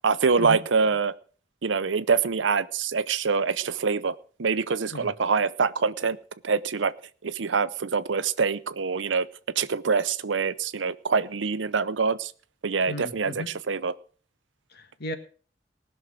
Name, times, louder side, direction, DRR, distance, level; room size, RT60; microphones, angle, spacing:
voice 1, 0.0-1.1 1.6-6.2 6.4-6.9 7.2-9.3 9.6-12.3 12.6-13.9, right 5 dB, 90° right, 16 dB, 0.7 m, -25 dB
voice 2, 12.9-13.5 14.7-15.2, left 1 dB, 60° left, 9 dB, 1.7 m, -35 dB
19.0 x 6.4 x 6.2 m, 0.41 s
head